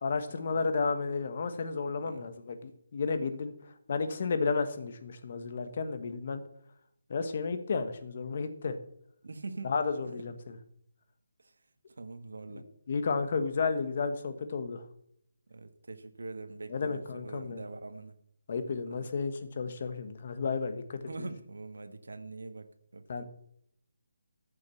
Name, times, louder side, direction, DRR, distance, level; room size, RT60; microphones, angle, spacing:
voice 1, 0.0-3.5 3.9-6.4 7.1-8.8 9.6-10.6 12.5-14.8 16.7-17.6 18.5-21.3 23.1-23.2, left 4 dB, 35° left, 9 dB, 1.3 m, -32 dB
voice 2, 1.9-2.3 9.2-9.7 10.0-10.3 11.4-11.5 12.0-12.7 15.5-18.1 18.9-19.1 21.0-23.2, right 3 dB, 75° right, 8 dB, 1.7 m, -43 dB
13.5 x 6.3 x 7.0 m, 0.70 s
hypercardioid pair, 175°, 0 cm